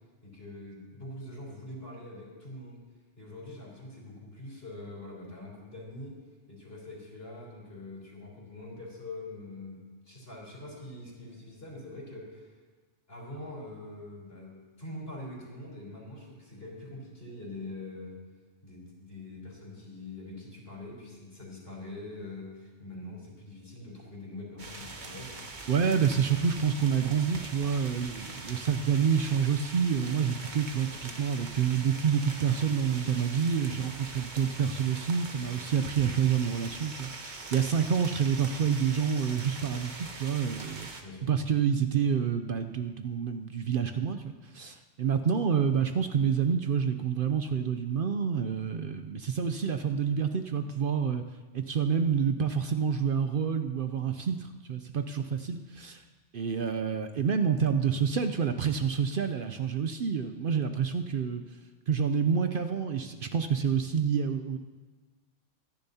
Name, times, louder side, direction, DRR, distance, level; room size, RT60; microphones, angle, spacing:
voice 1, 0.2-2.8 3.2-6.1 6.5-12.6 13.1-18.2 18.6-25.5 41.0-41.3, left 2 dB, 55° left, -3 dB, 4.1 m, -44 dB
sound 1, 24.6-41.0, right 3 dB, 40° right, 1.1 m, -43 dB
voice 2, 25.7-40.9 41.2-51.2 51.5-56.0 56.3-61.4 61.9-64.6, right 7 dB, 60° right, 8 dB, 0.7 m, -28 dB
24.0 x 10.5 x 2.8 m, 1.3 s
omnidirectional pair, 1.3 m